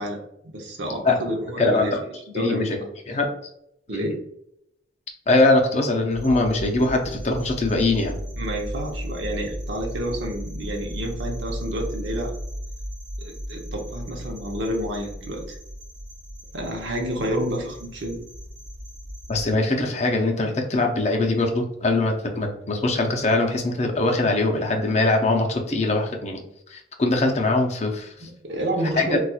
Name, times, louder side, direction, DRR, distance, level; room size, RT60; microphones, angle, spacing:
voice 1, 0.0-2.8 3.9-4.2 8.4-12.3 13.2-15.6 16.5-18.2 28.2-29.2, right 1 dB, 75° right, 1 dB, 0.8 m, -29 dB
voice 2, 1.6-2.0 2.3-2.8 3.1-3.3 3.9-4.1 5.3-8.2 19.3-26.4 26.7-28.3 28.9-29.2, left 2 dB, 35° left, 2 dB, 0.5 m, -22 dB
sound 1, 6.1-19.5, equal, ahead, 0.7 m, -35 dB
4.1 x 2.3 x 2.3 m, 0.76 s
head